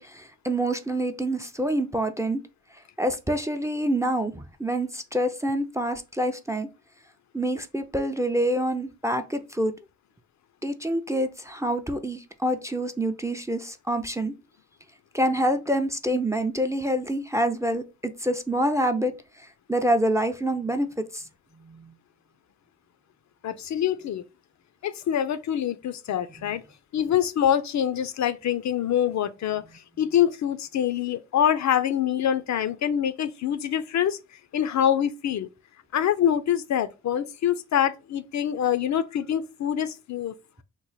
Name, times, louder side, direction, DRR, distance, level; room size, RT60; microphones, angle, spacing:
voice 1, 0.0-2.4 3.0-6.7 7.3-9.7 10.6-14.3 15.1-17.8 18.2-19.1 19.7-21.2 21.6-21.9 26.4-26.5, right 1 dB, 10° right, 0.4 m, -26 dB
voice 2, 23.4-24.2 24.8-26.6 26.9-34.2 34.5-35.5 35.9-40.3, left 10 dB, 55° left, 0.4 m, -25 dB
3.1 x 2.1 x 4.0 m
cardioid pair, 55°, 33 cm